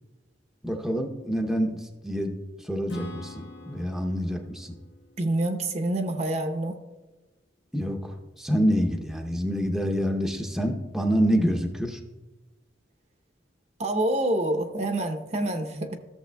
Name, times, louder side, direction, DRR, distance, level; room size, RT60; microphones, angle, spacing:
voice 1, 0.6-2.3 2.6-4.7 7.7-12.0, equal, ahead, 3 dB, 0.7 m, -27 dB
Acoustic guitar / Strum, 2.9-6.5, equal, 65° left, 1.0 m, -42 dB
voice 2, 5.2-6.8 13.8-16.0, right 1 dB, 40° right, 6 dB, 0.7 m, -27 dB
14.5 x 7.1 x 2.2 m, 1.1 s
head